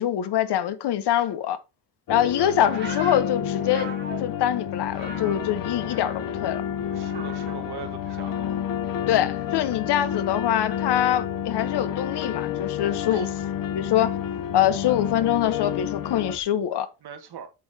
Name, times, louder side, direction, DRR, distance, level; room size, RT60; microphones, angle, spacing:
voice 1, 0.0-1.6 2.1-3.9 4.2-6.6 9.1-13.3 13.7-14.2 14.5-16.9, left 11 dB, 75° left, 1.3 m, -24 dB
sound 1, 2.1-16.4, left 10 dB, 55° left, 0.9 m, -30 dB
sound 2, 2.6-6.5 6.8-7.7 8.0-10.7 11.5-11.9, right 3 dB, 25° right, 4.1 m, -42 dB
Boat Water vehicle, 4.9-16.4, left 3 dB, 10° right, 1.4 m, -46 dB
voice 2, 6.9-8.5 13.1-13.3 17.0-17.5, right 8 dB, 70° right, 2.1 m, -40 dB
8.8 x 8.1 x 2.9 m
cardioid pair, 150°, 40 cm